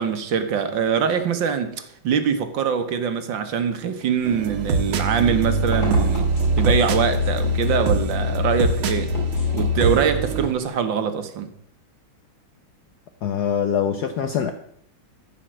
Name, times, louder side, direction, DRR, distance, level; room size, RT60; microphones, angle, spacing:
voice 1, 0.0-6.3 6.6-9.1 9.5-11.5, right 7 dB, 70° right, 1.7 m, -23 dB
sound 1, 4.0-10.7, equal, 35° left, 4.9 m, -37 dB
sound 2, 4.2-10.5, right 1 dB, 85° right, 2.0 m, -22 dB
voice 2, 13.2-14.5, left 8 dB, 65° left, 1.1 m, -23 dB
14.5 x 5.6 x 7.5 m
omnidirectional pair, 2.2 m